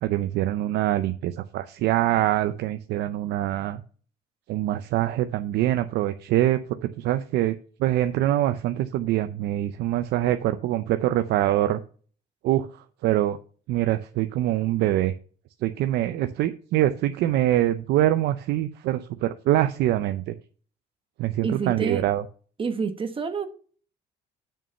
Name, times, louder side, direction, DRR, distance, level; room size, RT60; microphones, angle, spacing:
voice 1, 0.0-3.8 4.5-11.8 12.4-12.7 13.0-13.4 13.7-15.1 15.6-20.3 21.2-22.2, right 13 dB, 80° right, 0.6 m, -24 dB
voice 2, 21.4-22.0 22.6-23.5, right 5 dB, 30° right, 1.2 m, -28 dB
6.8 x 6.2 x 6.8 m
cardioid pair, 110°, 17 cm